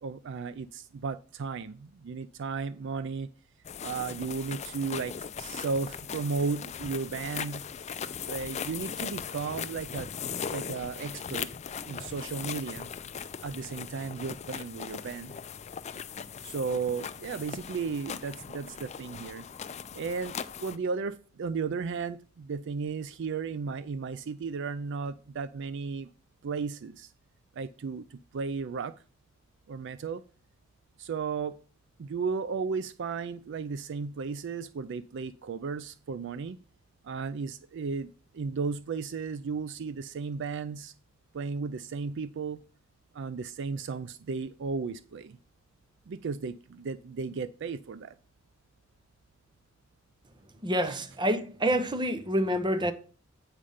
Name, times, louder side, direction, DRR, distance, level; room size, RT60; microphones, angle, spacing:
voice 1, 0.0-3.3 3.8-7.6 8.3-10.1 10.5-11.5 11.9-12.9 13.4-15.4 16.4-19.5 19.9-20.3 20.6-26.1 26.4-27.1 27.6-28.9 29.7-30.2 31.0-31.6 32.0-36.6 37.0-40.9 41.3-42.6 43.1-45.4 46.1-48.1 50.9-51.0, right 5 dB, 60° right, 0.4 m, -34 dB
sound 1, 3.6-20.8, left 7 dB, 35° left, 0.4 m, -39 dB
voice 2, 50.6-52.9, equal, 20° right, 0.8 m, -27 dB
8.7 x 5.0 x 5.5 m
head